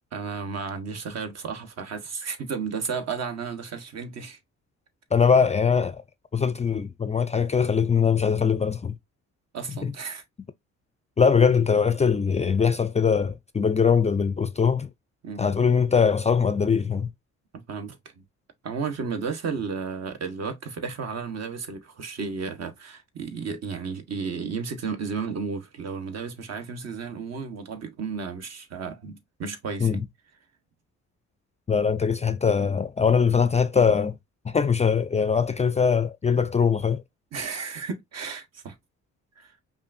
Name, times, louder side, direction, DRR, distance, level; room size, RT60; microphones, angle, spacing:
voice 1, 0.1-4.4 9.5-10.2 15.2-15.4 17.5-18.2 18.6-30.0 37.3-38.8 39.4-39.5, right 5 dB, 60° right, 1.1 m, -33 dB
voice 2, 5.1-6.0 6.3-9.0 9.8-9.9 11.2-14.9 15.4-17.1 29.8-30.1 31.7-34.2 34.4-37.0, left 6 dB, 25° left, 0.4 m, -22 dB
5.3 x 2.5 x 2.5 m
cardioid pair, 90°, 30 cm